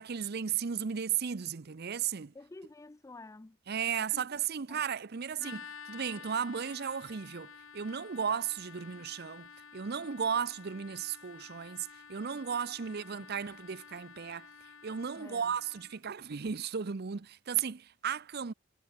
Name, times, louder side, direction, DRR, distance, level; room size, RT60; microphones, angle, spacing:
voice 1, 0.0-2.3 3.7-14.5 14.8-18.5, right 7 dB, 50° right, 0.6 m, -35 dB
voice 2, 2.3-3.6 4.0-4.3 4.7-4.8 5.4-5.6 13.2-13.3 15.2-15.5, left 2 dB, 15° left, 0.3 m, -50 dB
sound 1, 5.4-16.0, left 6 dB, 75° left, 3.1 m, -51 dB
head